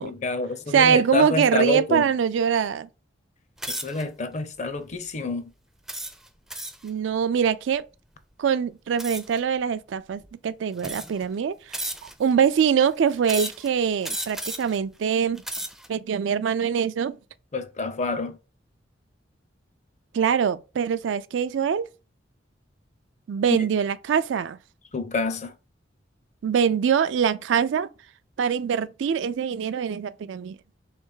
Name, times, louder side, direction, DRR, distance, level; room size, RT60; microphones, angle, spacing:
voice 1, 0.0-2.0 3.7-5.5 17.5-18.4 24.9-25.5, left 3 dB, 40° left, 0.6 m, -28 dB
voice 2, 0.7-2.9 6.8-7.8 8.4-15.4 15.9-17.2 20.1-21.9 23.3-24.6 26.4-27.9 28.4-30.6, right 7 dB, 85° right, 0.4 m, -23 dB
sound 1, 3.6-4.0 4.7-4.9 5.9-6.9 9.0-9.4 10.2-10.3 10.8-11.3 11.7-12.3 13.2-13.7 14.0-14.8 15.3-15.9, right 1 dB, ahead, 0.4 m, -33 dB
3.3 x 3.3 x 4.6 m
head